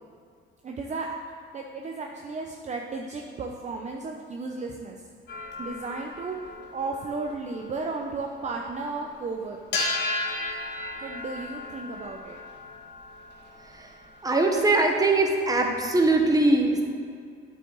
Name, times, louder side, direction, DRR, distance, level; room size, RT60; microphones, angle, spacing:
voice 1, 0.6-1.2 1.5-5.0 5.6-6.4 6.7-9.8 11.0-12.4, right 3 dB, 35° right, 2 dB, 0.7 m, -34 dB
sound 1, 5.3-8.8 9.0-9.2 9.6-14.8, left 2 dB, 55° left, 1.9 m, -35 dB
voice 2, 14.2-16.9, right 2 dB, 15° right, 2 dB, 1.2 m, -22 dB
9.4 x 7.9 x 3.9 m, 2.3 s
cardioid pair, 115°, 21 cm